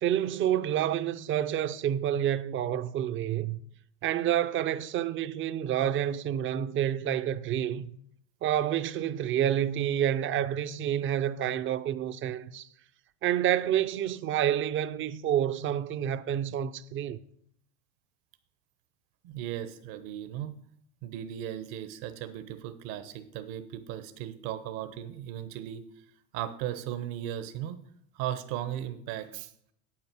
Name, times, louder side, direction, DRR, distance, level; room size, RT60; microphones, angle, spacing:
voice 1, 0.0-3.6 4.0-7.9 8.4-12.7 13.2-17.2, right 10 dB, 30° right, 0.5 m, -28 dB
voice 2, 19.2-20.5 21.0-25.8 26.3-27.8 28.1-29.5, right 11 dB, 60° right, 1.1 m, -36 dB
8.7 x 8.6 x 6.2 m
supercardioid pair, 130°, 41 cm